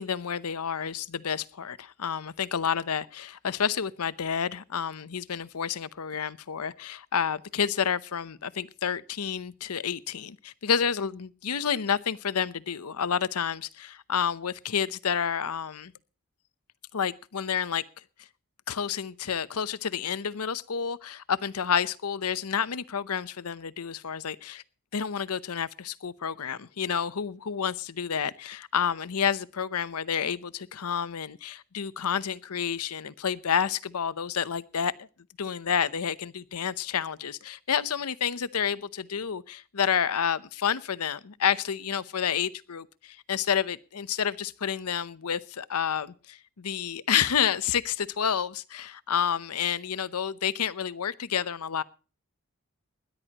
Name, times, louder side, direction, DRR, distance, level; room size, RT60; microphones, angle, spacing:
voice 1, 0.0-15.9 16.9-17.8 18.7-24.6 24.9-35.1 35.4-51.8, left 7 dB, 90° left, 0.7 m, -29 dB
20.0 x 13.0 x 2.9 m
head